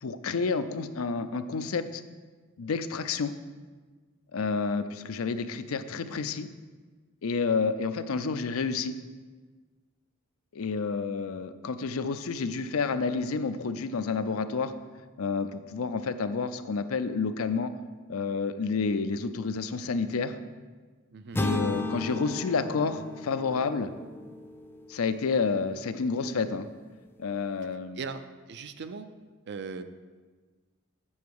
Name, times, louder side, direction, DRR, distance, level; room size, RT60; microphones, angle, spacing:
voice 1, 0.0-2.0 2.6-3.3 4.3-6.5 7.2-9.0 10.5-14.7 15.2-17.7 18.1-20.4 21.4-23.9 24.9-26.7 27.2-28.0, left 4 dB, 70° left, 11 dB, 0.5 m, -29 dB
sound 1, 21.3-25.4, left 2 dB, 10° left, 0.4 m, -34 dB
voice 2, 28.5-29.1 29.5-29.8, right 5 dB, 50° right, 10 dB, 0.5 m, -38 dB
7.2 x 6.9 x 4.7 m, 1.4 s
head